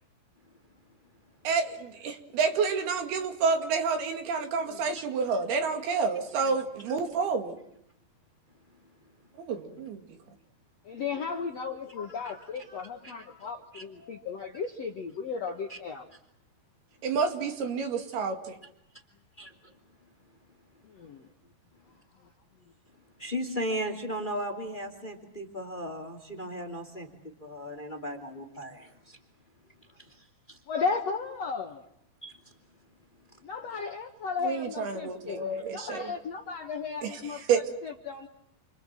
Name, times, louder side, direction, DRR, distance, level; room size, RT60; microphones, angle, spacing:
voice 1, 1.4-7.6 9.4-10.0 17.0-18.6 34.4-36.1 37.0-37.6, right 5 dB, 70° right, 5 dB, 4.1 m, -29 dB
voice 2, 10.8-16.0 20.9-21.3 30.7-31.8 33.4-35.5 35.7-38.3, left 5 dB, 60° left, 3 dB, 1.8 m, -35 dB
voice 3, 19.4-19.8 23.2-27.1 27.4-29.2 30.0-30.6 32.2-32.5 33.3-33.4, equal, 15° left, 6 dB, 2.2 m, -36 dB
29.0 x 25.5 x 7.6 m, 0.74 s
omnidirectional pair, 4.8 m